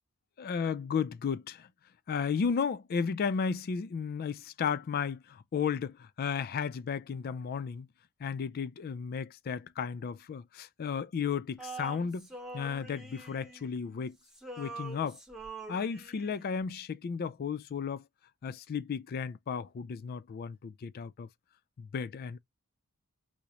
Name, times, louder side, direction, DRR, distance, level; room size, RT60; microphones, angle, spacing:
voice 1, 0.4-1.7 2.1-7.9 8.2-12.3 12.5-14.2 14.6-15.2 15.7-18.0 18.4-21.3 21.8-22.4, left 6 dB, 45° left, 0.3 m, -34 dB
Male singing, 11.6-14.0 14.3-16.5, right 3 dB, ahead, 0.6 m, -45 dB
4.8 x 2.1 x 2.8 m
head